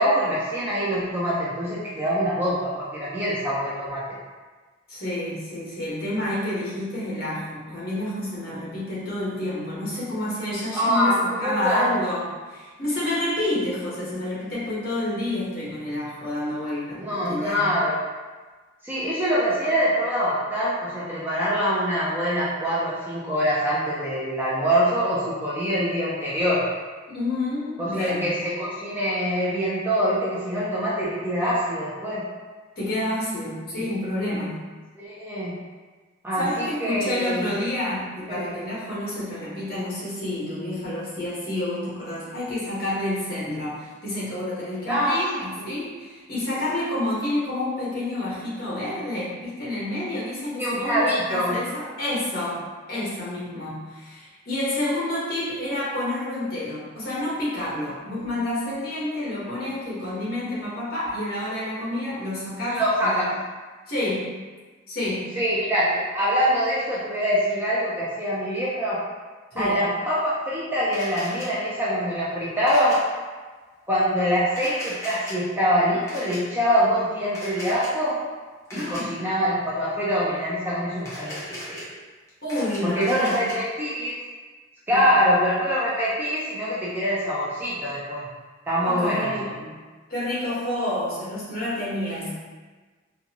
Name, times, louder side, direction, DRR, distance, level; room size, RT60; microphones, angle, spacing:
voice 1, 0.0-4.0 10.7-11.9 17.0-18.0 18.8-26.7 27.8-32.2 35.0-35.5 36.2-37.5 38.3-38.5 44.9-45.2 45.6-45.7 50.6-51.6 62.6-63.1 65.4-69.0 69.6-70.2 70.5-73.0 73.9-78.1 78.7-81.4 81.7-81.8 82.8-84.2 84.9-88.3 88.7-89.3, equal, 10° right, -8 dB, 0.5 m, -24 dB
voice 2, 4.9-17.6 27.1-28.3 32.8-34.6 36.4-52.6 52.9-63.3 63.9-64.4 64.9-65.3 69.5-69.8 78.7-79.1 82.4-83.3 84.9-85.1 88.8-89.7 90.1-92.3, left 1 dB, 50° left, -8 dB, 1.3 m, -29 dB
Camera, 70.9-71.5 72.7-73.0 74.5-75.3 76.1-76.4 77.3-77.9 78.7-79.0 81.0-81.8 82.3-83.5, left 1 dB, 15° left, 0.9 m, -38 dB
3.9 x 2.4 x 2.9 m, 1.4 s
head